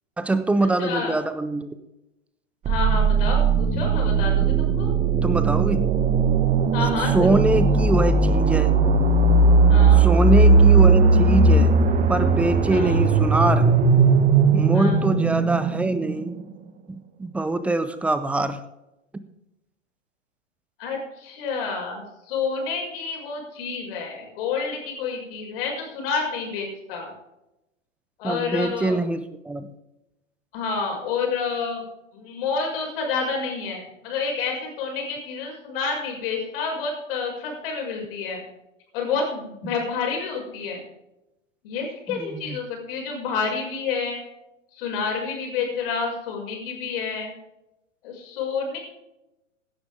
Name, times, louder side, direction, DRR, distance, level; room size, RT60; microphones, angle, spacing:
voice 1, 0.2-1.7 5.2-5.8 7.1-8.7 9.9-11.8 12.1-13.7 14.5-16.4 16.9-18.6 28.2-29.7 42.1-42.6, right 2 dB, 5° right, 12 dB, 0.4 m, -23 dB
voice 2, 0.8-1.2 2.7-4.9 6.7-7.4 9.7-10.0 12.7-13.0 14.7-15.0 20.8-27.1 28.2-29.0 30.5-31.8 32.1-38.4 38.9-40.8 41.6-44.2 44.8-47.3 48.0-48.8, left 5 dB, 45° left, 1 dB, 6.2 m, -29 dB
sound 1, 2.7-16.4, right 4 dB, 20° right, 1.4 m, -18 dB
16.0 x 12.0 x 3.6 m, 0.91 s
hypercardioid pair, 115°, 38 cm